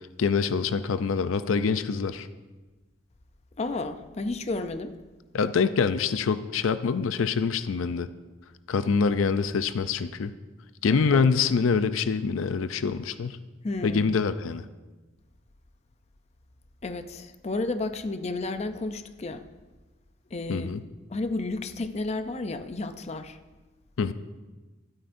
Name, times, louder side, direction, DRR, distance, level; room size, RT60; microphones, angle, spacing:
voice 1, 0.2-2.3 5.3-8.1 8.7-10.3 10.8-13.4 13.8-14.6 20.5-20.8 24.0-24.1, left 5 dB, 85° left, 12 dB, 0.4 m, -25 dB
voice 2, 3.6-5.0 10.9-11.3 13.6-14.1 16.8-19.5 20.3-20.7 21.1-23.4, left 2 dB, 35° left, 10 dB, 0.5 m, -32 dB
13.0 x 12.5 x 2.6 m, 1.2 s
head